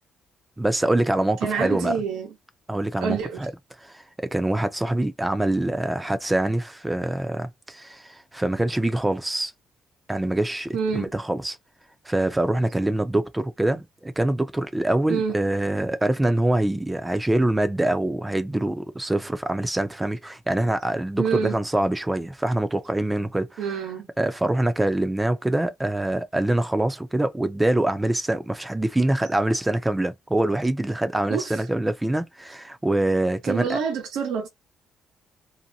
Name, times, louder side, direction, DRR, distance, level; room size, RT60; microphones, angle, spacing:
voice 1, 0.6-2.0 2.7-3.5 3.8-9.5 10.1-11.6 12.0-23.8 24.2-33.8, right 1 dB, 15° right, 0.6 m, -24 dB
voice 2, 1.4-2.3 3.0-3.4 10.7-11.1 15.1-15.3 21.2-21.5 23.6-24.1 31.3-31.5 33.4-34.5, right 6 dB, 90° right, 1.0 m, -27 dB
2.7 x 2.2 x 2.7 m
cardioid pair, 90°, 0 cm